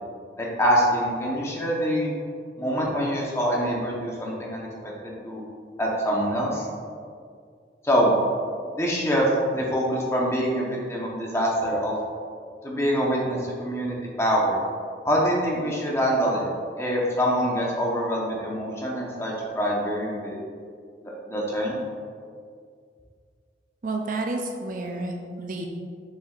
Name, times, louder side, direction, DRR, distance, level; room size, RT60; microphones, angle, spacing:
voice 1, 0.4-2.1 2.6-4.7 5.0-5.4 5.8-6.7 7.8-8.1 8.7-11.9 12.6-14.6 15.0-16.5 16.8-20.4 21.0-21.8, equal, 15° left, -3 dB, 1.0 m, -25 dB
voice 2, 23.8-25.7, right 2 dB, 50° right, 2 dB, 0.5 m, -30 dB
6.6 x 6.5 x 2.5 m, 2.2 s
head